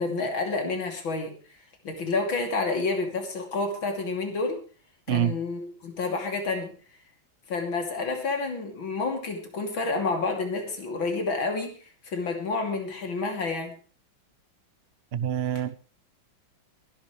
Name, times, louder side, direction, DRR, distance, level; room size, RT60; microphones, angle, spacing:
voice 1, 0.0-1.3 1.8-4.6 5.1-6.7 7.5-11.7 12.0-13.7, left 3 dB, 85° left, 3.6 m, -29 dB
voice 2, 15.1-15.7, right 10 dB, 65° right, 0.6 m, -26 dB
23.5 x 11.5 x 3.3 m
omnidirectional pair, 2.1 m